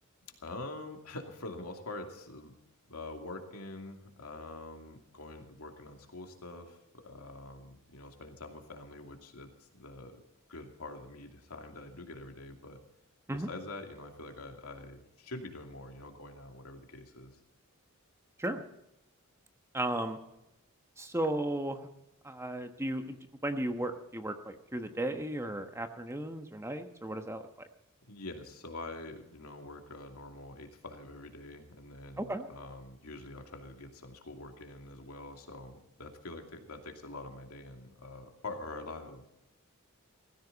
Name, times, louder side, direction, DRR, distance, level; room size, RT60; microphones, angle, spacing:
voice 1, 0.3-2.5 2.9-10.2 10.5-12.8 13.3-17.3 28.1-39.3, left 2 dB, 90° left, 3 dB, 2.6 m, -45 dB
voice 2, 19.7-20.2 21.0-21.9 22.2-23.2 23.4-27.4 32.2-32.5, right 1 dB, 10° right, 7 dB, 1.2 m, -35 dB
17.5 x 15.0 x 4.1 m, 0.86 s
head